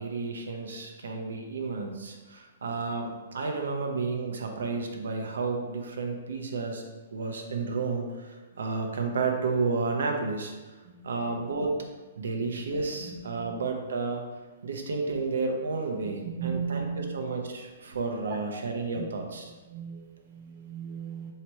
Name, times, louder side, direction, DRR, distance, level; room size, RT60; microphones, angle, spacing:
voice 1, 0.0-6.8 7.1-10.5 11.0-11.7 12.2-14.2 14.6-19.5, right 4 dB, 90° right, 2 dB, 0.6 m, -31 dB
voice 2, 10.9-11.2 12.4-12.5 13.0-13.6 16.0-17.1 18.2-18.4 18.9-19.0 19.7-21.3, right 6 dB, 35° right, 1 dB, 0.4 m, -37 dB
3.1 x 2.8 x 4.4 m, 1.3 s
hypercardioid pair, 160°, 0 cm